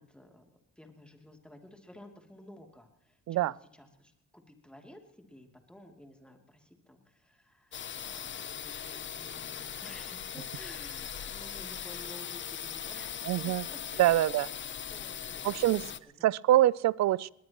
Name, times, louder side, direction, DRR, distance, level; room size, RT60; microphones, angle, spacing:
voice 1, 0.0-14.3 14.9-16.3, left 1 dB, 5° left, 3 dB, 2.9 m, -53 dB
sound 1, 7.7-16.0, left 8 dB, 40° left, 0.7 m, -40 dB
voice 2, 13.3-13.6 14.0-14.5 15.4-15.8 16.2-17.3, right 14 dB, 65° right, 22 dB, 0.5 m, -24 dB
20.5 x 19.5 x 3.0 m, 0.80 s
cardioid pair, 90°, 30 cm